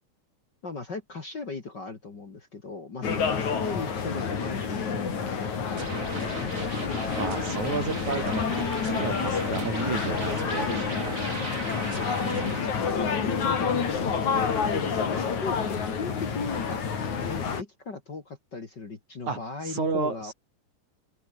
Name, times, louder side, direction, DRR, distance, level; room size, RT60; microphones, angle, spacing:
voice 1, 0.6-6.5 11.9-16.8 17.3-20.3, left 4 dB, 35° left, 2.8 m, -38 dB
sound 1, 3.0-17.6, left 6 dB, 60° left, 4.9 m, -28 dB
sound 2, 5.7-12.6, right 3 dB, 25° right, 3.3 m, -37 dB
voice 2, 7.2-11.2 12.2-12.6 19.3-19.4 19.7-20.3, right 4 dB, 60° right, 6.6 m, -32 dB
open air
omnidirectional pair, 3.8 m